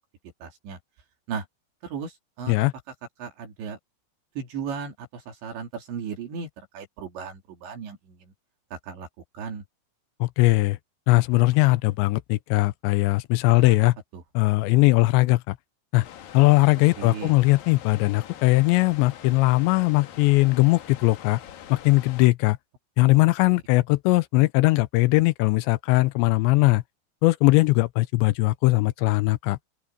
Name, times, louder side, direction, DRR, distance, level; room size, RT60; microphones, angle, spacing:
voice 1, 0.4-0.8 1.3-1.5 1.8-2.5 3.2-3.8 4.4-6.5 6.7-8.3 8.7-9.1 9.3-9.6 13.6-13.8 14.1-14.2 17.0-17.3 23.1-23.2, right 6 dB, 75° right, 5.7 m, -36 dB
voice 2, 10.2-10.8 11.1-14.0 14.4-15.6 15.9-16.1 16.3-21.4 21.7-22.6 23.0-26.8 27.2-29.6, left 21 dB, 85° left, 2.8 m, -20 dB
sound 1, 16.0-22.3, left 10 dB, 65° left, 2.9 m, -44 dB
open air
omnidirectional pair, 5.2 m